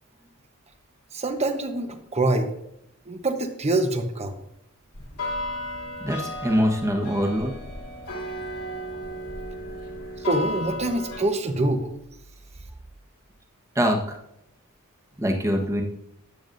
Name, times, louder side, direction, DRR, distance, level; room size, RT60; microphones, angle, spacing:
voice 1, 1.1-2.5 3.1-4.4 10.2-11.9, right 2 dB, 30° right, 6 dB, 1.0 m, -25 dB
sound 1, 4.9-11.2, left 1 dB, 80° left, 2.8 m, -34 dB
voice 2, 6.0-7.5 13.7-14.2 15.2-15.8, equal, 15° right, 2 dB, 1.3 m, -23 dB
13.0 x 9.0 x 2.6 m, 0.80 s
head